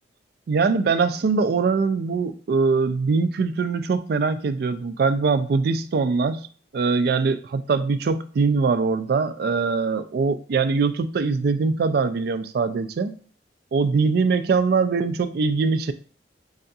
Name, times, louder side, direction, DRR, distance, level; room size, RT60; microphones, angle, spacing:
voice 1, 0.5-6.5 6.7-13.1 13.7-15.9, right 4 dB, 55° right, 11 dB, 0.3 m, -22 dB
5.4 x 2.4 x 2.6 m, 0.43 s
head